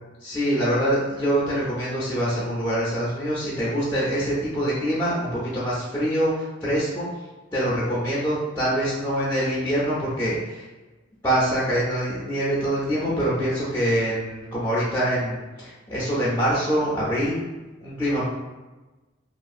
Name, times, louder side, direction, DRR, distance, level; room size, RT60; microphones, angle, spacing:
voice 1, 0.2-7.1 7.5-10.7 11.2-17.4 17.8-18.3, equal, 10° left, -9 dB, 0.5 m, -24 dB
2.6 x 2.4 x 2.4 m, 1.1 s
head